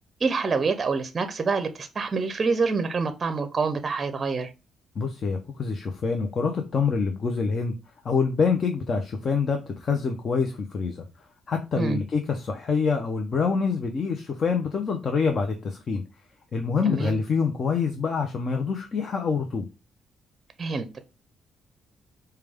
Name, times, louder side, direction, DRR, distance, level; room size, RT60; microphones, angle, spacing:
voice 1, 0.2-4.5 11.8-12.0 16.8-17.2 20.6-21.0, right 4 dB, 35° right, 0.5 m, -26 dB
voice 2, 5.0-7.7 8.0-11.0 11.5-16.0 16.5-19.7, left 5 dB, 45° left, 0.6 m, -26 dB
4.9 x 2.3 x 3.4 m
cardioid pair, 90°, 0 cm